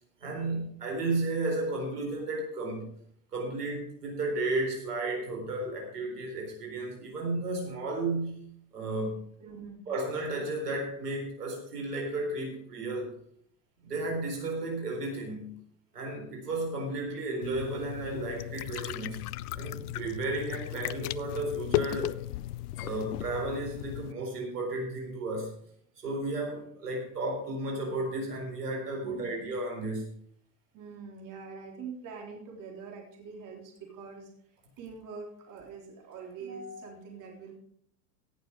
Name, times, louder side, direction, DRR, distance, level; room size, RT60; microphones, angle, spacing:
voice 1, 0.2-2.9 3.3-8.5 8.7-9.2 9.9-13.1 13.8-15.6 15.9-19.3 19.6-22.2 22.8-25.5 26.0-30.1, right 2 dB, 85° right, 1 dB, 4.3 m, -33 dB
voice 2, 9.4-9.8 29.0-29.3 30.7-34.3 34.8-37.6, right 5 dB, 40° right, 1 dB, 3.7 m, -44 dB
sound 1, 17.4-24.1, left 15 dB, 75° left, 0.6 m, -36 dB
17.5 x 6.8 x 5.0 m, 0.67 s
hypercardioid pair, 95°, 46 cm